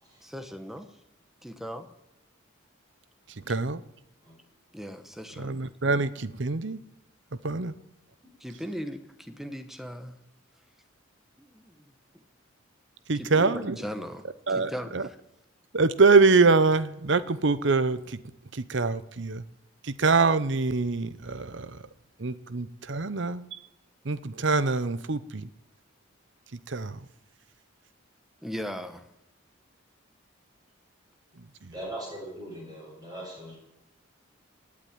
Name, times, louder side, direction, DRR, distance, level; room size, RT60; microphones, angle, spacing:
voice 1, 0.2-0.9 1.4-1.9 4.7-5.6 8.4-10.2 11.4-11.8 13.1-15.2 28.4-29.1, equal, ahead, 1.1 m, -38 dB
voice 2, 3.5-3.8 5.4-6.8 7.4-7.8 13.1-13.8 14.5-15.1 15.7-18.2 18.5-19.4 19.8-21.8 22.2-23.4 24.0-25.5 26.7-27.0 31.6-31.7, right 4 dB, 60° right, 0.8 m, -24 dB
voice 3, 31.7-33.6, right 1 dB, 20° right, 7.0 m, -40 dB
18.0 x 8.6 x 9.6 m
head